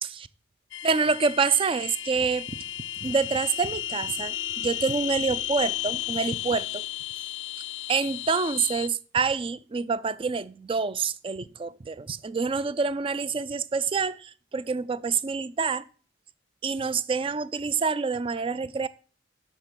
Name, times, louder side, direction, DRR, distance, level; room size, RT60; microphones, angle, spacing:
sound 1, 0.7-8.9, left 13 dB, 70° left, 0.4 m, -34 dB
voice 1, 0.8-2.5 3.0-6.8 7.9-15.8 16.6-18.9, right 5 dB, 30° right, 0.4 m, -27 dB
6.5 x 6.0 x 6.9 m
head